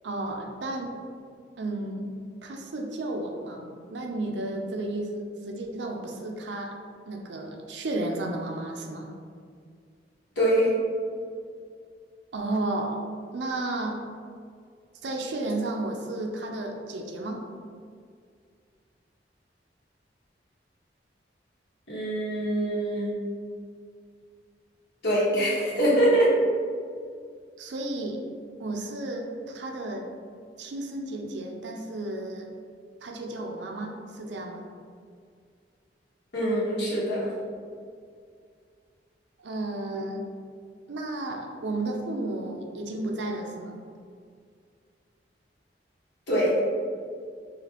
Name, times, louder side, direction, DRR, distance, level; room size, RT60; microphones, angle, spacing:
voice 1, 0.0-0.9 1.6-2.1 2.4-6.8 7.1-9.2 12.3-13.0 13.3-14.0 15.0-17.4 27.6-28.2 28.6-30.1 30.6-32.5 33.0-34.6 39.4-40.3 40.9-43.8, right 2 dB, 75° right, 2 dB, 0.5 m, -33 dB
voice 2, 10.4-10.7 21.9-23.1 25.0-26.3 36.3-37.3 46.3-46.5, equal, 75° left, -7 dB, 1.3 m, -23 dB
5.1 x 2.5 x 2.8 m, 2.2 s
head